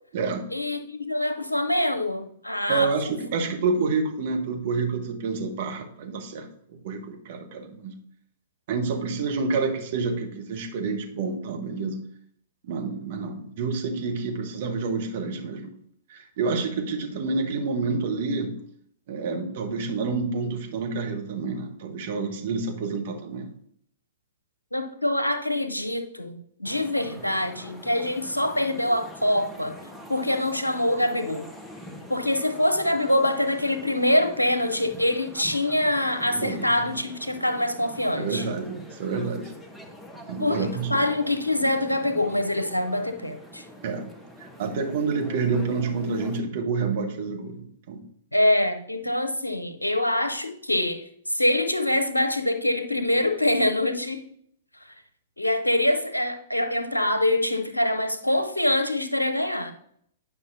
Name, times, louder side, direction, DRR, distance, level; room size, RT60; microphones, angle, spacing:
voice 1, 0.5-3.3 24.7-29.8 30.1-31.5 32.1-38.5 40.4-43.6 48.3-54.3 54.8-54.9 55.4-59.7, left 1 dB, 85° left, 0.7 m, -25 dB
voice 2, 2.7-6.4 6.8-7.9 8.7-12.0 12.6-15.7 16.1-18.6 19.1-23.5 36.3-36.7 38.1-39.5 40.3-41.0 43.8-48.0, right 4 dB, 50° right, 1.2 m, -28 dB
sound 1, 26.6-46.4, equal, 5° left, 0.9 m, -45 dB
9.6 x 5.6 x 2.7 m
figure-of-eight pair, 105°, 0 cm